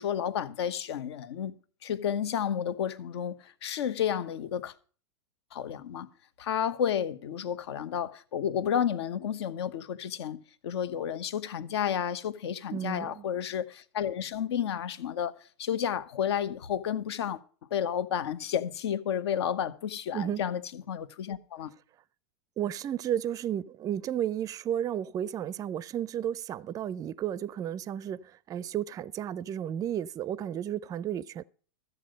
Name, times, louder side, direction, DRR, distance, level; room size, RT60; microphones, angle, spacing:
voice 1, 0.0-1.6 1.8-4.7 5.5-6.1 6.4-10.4 10.6-17.4 17.7-21.7, left 9 dB, 70° left, 1.0 m, -31 dB
voice 2, 12.7-13.2 20.1-20.4 22.6-31.4, right 10 dB, 25° right, 0.4 m, -33 dB
13.5 x 8.0 x 5.1 m
hypercardioid pair, 110°, 14 cm